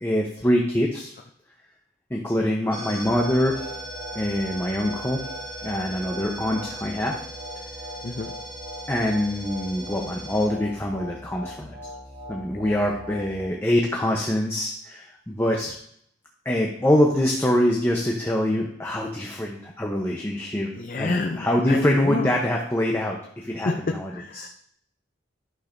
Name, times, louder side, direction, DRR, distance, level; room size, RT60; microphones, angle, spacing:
voice 1, 0.0-1.1 2.1-3.7 4.1-5.2 5.6-7.2 8.9-11.7 12.3-15.7 16.4-20.7 21.0-24.5, left 1 dB, 15° left, -1 dB, 0.8 m, -24 dB
sound 1, 2.7-13.5, equal, 50° right, 3.7 m, -37 dB
voice 2, 8.0-8.3 12.6-13.0 20.8-22.3 23.6-24.5, left 3 dB, 45° left, 3 dB, 0.5 m, -29 dB
11.5 x 6.4 x 2.6 m, 0.68 s
head